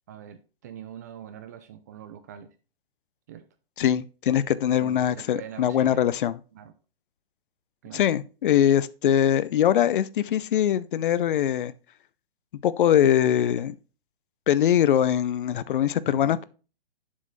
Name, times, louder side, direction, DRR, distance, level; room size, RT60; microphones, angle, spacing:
voice 1, 0.1-2.5 3.3-3.4 4.7-6.1 6.5-6.7 7.8-8.1 16.1-16.4, right 10 dB, 20° right, 0.3 m, -43 dB
voice 2, 3.8-6.4 7.9-11.7 12.6-13.8 14.5-16.5, left 10 dB, 60° left, 0.6 m, -22 dB
7.3 x 6.4 x 3.1 m
hypercardioid pair, 140°, 30 cm